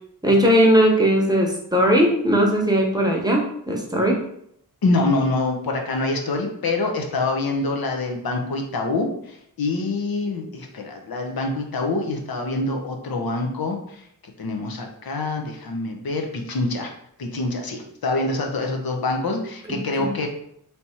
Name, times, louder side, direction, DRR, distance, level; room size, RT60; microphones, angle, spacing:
voice 1, 0.2-4.2 19.7-20.1, equal, 10° right, -1 dB, 0.8 m, -19 dB
voice 2, 4.8-14.0 14.4-16.9 17.2-20.3, left 2 dB, 75° left, 2 dB, 0.8 m, -25 dB
3.4 x 2.8 x 4.3 m, 0.71 s
wide cardioid pair, 110°, 36 cm